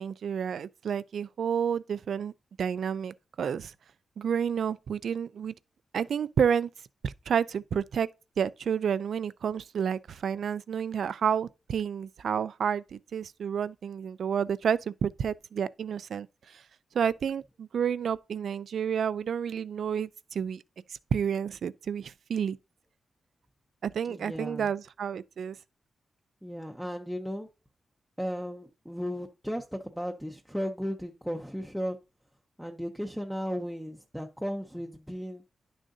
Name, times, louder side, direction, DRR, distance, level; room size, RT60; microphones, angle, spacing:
voice 1, 0.0-2.3 2.6-3.7 4.2-5.5 5.9-6.7 7.0-8.1 8.4-16.3 16.9-20.6 21.1-22.6 23.8-25.6, right 7 dB, 60° right, 0.4 m, -30 dB
voice 2, 24.1-24.7 26.4-27.5 28.2-32.0 32.6-35.4, equal, ahead, 0.6 m, -35 dB
11.0 x 6.3 x 2.6 m
wide cardioid pair, 175°, 0 cm